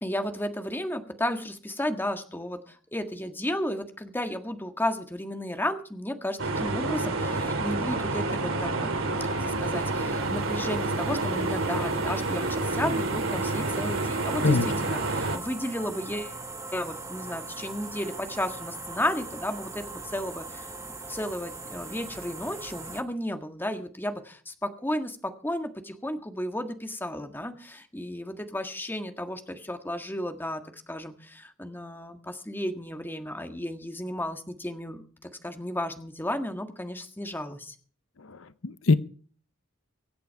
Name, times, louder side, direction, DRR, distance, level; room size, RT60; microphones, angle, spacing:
voice 1, 0.0-16.4 16.7-20.7 21.1-30.6 30.9-37.7, left 1 dB, 10° left, 7 dB, 1.6 m, -33 dB
sound 1, 6.4-15.4, right 2 dB, 85° right, 2.7 m, -28 dB
sound 2, 8.6-23.0, right 3 dB, 15° right, 1.6 m, -41 dB
voice 2, 38.3-38.9, left 3 dB, 80° left, 14 dB, 0.8 m, -23 dB
24.0 x 8.3 x 4.7 m, 0.43 s
head